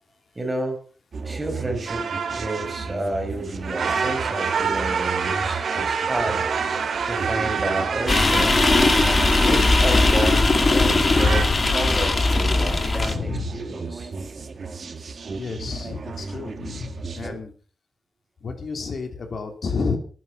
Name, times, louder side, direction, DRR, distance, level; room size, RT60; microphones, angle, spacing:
voice 1, 0.3-0.8 1.2-6.5 6.8-8.7 9.4-14.1 17.2-17.4, right 1 dB, 20° right, 4 dB, 4.8 m, -31 dB
sound 1, 1.1-17.3, right 4 dB, 55° right, 2.1 m, -35 dB
sound 2, 1.9-3.2 3.5-11.4, right 6 dB, 75° right, 2.9 m, -27 dB
sound 3, 8.1-13.1, left 3 dB, 35° left, 2.0 m, -19 dB
voice 2, 11.0-11.6 13.0-13.7 15.3-17.5 18.4-20.0, left 4 dB, 60° left, 5 dB, 3.1 m, -30 dB
18.5 x 9.6 x 5.7 m, 0.43 s
wide cardioid pair, 115°, 0 cm